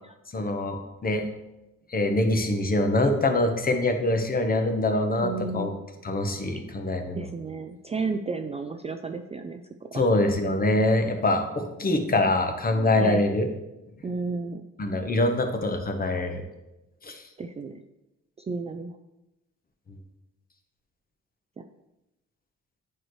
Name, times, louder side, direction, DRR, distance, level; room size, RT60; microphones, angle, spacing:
voice 1, 0.3-1.2 1.9-5.7 6.0-7.3 9.9-13.5 14.8-16.4 17.0-17.2, left 2 dB, 30° left, 5 dB, 1.0 m, -24 dB
voice 2, 5.2-5.8 7.2-10.1 13.0-13.3 14.0-14.6 17.4-17.8 18.5-19.0, right 4 dB, 20° right, 6 dB, 0.4 m, -33 dB
8.9 x 4.6 x 3.1 m, 0.96 s
cardioid pair, 90°, 30 cm